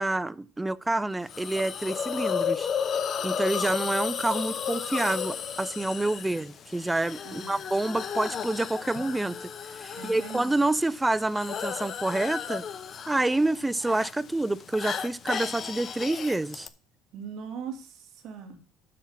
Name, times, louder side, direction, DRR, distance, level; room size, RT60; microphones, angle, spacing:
voice 1, 0.0-2.7 3.2-9.4 9.8-12.6 13.1-16.7, right 2 dB, 10° right, 0.3 m, -28 dB
Hiss, 1.3-16.7, left 7 dB, 35° left, 0.8 m, -34 dB
voice 2, 7.2-7.6 9.9-10.6 17.1-18.6, right 6 dB, 55° right, 2.5 m, -40 dB
8.4 x 7.0 x 5.7 m
cardioid pair, 150°, 0 cm